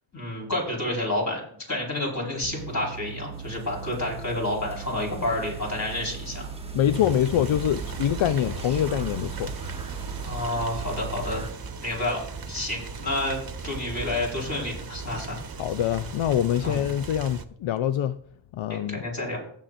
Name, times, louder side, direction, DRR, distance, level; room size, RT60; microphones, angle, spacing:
voice 1, 0.1-1.4 1.7-6.5 10.2-11.4 11.8-13.4 13.6-15.4 16.6-16.8 18.7-19.4, left 1 dB, 35° left, 4.7 m, -29 dB
sound 1, 2.4-11.5, right 7 dB, 90° right, 0.8 m, -40 dB
sound 2, 3.3-11.5, right 4 dB, 10° right, 1.2 m, -40 dB
voice 2, 6.7-9.5 15.6-18.2 18.5-19.0, left 10 dB, 75° left, 0.5 m, -25 dB
sound 3, 6.9-17.4, right 5 dB, 50° right, 1.0 m, -38 dB
19.0 x 7.4 x 2.6 m
wide cardioid pair, 100°, 47 cm